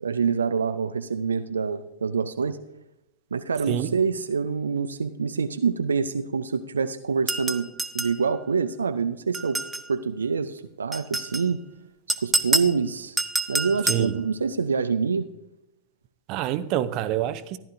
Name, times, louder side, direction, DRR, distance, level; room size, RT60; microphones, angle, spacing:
voice 1, 0.0-2.6 3.3-7.7 7.9-9.6 9.9-11.6 12.2-13.2 13.5-15.3, right 5 dB, 75° right, 0.5 m, -26 dB
sound 1, 7.3-8.2 9.3-9.9 10.9-11.4 12.1-12.7 13.2-14.1, right 2 dB, 10° right, 0.7 m, -27 dB
voice 2, 16.3-17.6, right 12 dB, 40° right, 0.7 m, -26 dB
15.0 x 12.0 x 2.6 m
figure-of-eight pair, 90°, 0 cm